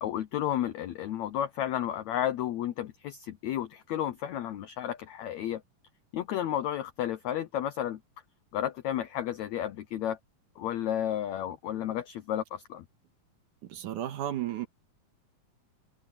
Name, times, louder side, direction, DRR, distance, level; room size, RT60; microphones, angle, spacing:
voice 1, 0.0-5.6 6.1-8.0 8.5-10.2 10.6-12.8, left 11 dB, 80° left, 1.6 m, -32 dB
voice 2, 13.6-14.7, right 11 dB, 65° right, 2.7 m, -33 dB
omnidirectional pair, 4.2 m